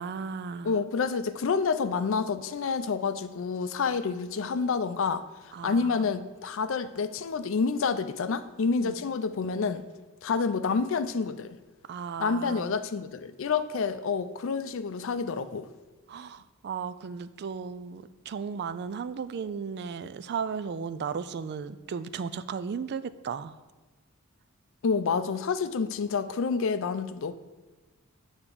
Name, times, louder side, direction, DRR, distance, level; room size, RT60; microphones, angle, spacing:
voice 1, 0.0-0.8 5.5-6.0 8.8-8.9 11.9-12.7 16.1-23.5, right 6 dB, 50° right, 0.3 m, -35 dB
voice 2, 0.6-5.2 5.6-9.8 10.2-11.6 12.2-15.7 24.8-27.3, left 5 dB, 65° left, 0.4 m, -28 dB
8.8 x 3.6 x 6.7 m
head